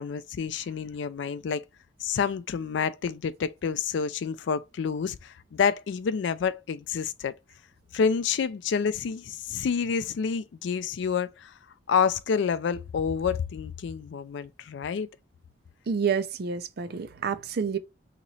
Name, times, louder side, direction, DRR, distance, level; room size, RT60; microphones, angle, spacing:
voice 1, 0.0-1.6 2.0-7.3 7.9-11.5 11.9-15.1, left 6 dB, 65° left, 0.3 m, -28 dB
voice 2, 15.9-17.8, right 6 dB, 55° right, 0.4 m, -28 dB
2.9 x 2.9 x 4.0 m
head